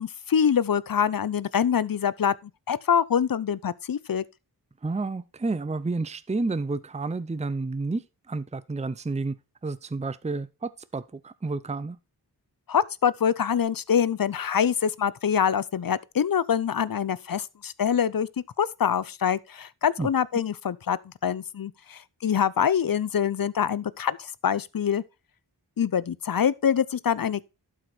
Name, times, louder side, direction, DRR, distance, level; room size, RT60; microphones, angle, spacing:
voice 1, 0.0-4.2 12.7-18.3 18.6-25.0 25.8-27.4, left 8 dB, 55° left, 0.6 m, -25 dB
voice 2, 4.8-9.4 9.6-12.0 20.0-20.1, right 3 dB, 15° right, 0.6 m, -30 dB
12.0 x 4.9 x 4.3 m
wide cardioid pair, 50°, 42 cm